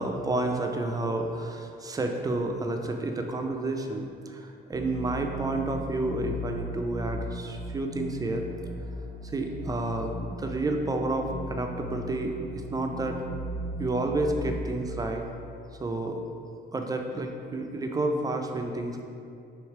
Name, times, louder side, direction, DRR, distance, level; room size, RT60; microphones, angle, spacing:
voice 1, 0.0-8.4 9.2-13.2 13.8-15.2 15.7-16.2 16.7-19.0, right 2 dB, 20° right, 3 dB, 0.4 m, -30 dB
sound 1, 4.7-14.7, equal, 75° right, 0.5 m, -37 dB
3.2 x 3.1 x 4.5 m, 2.5 s
cardioid pair, 90°, 20 cm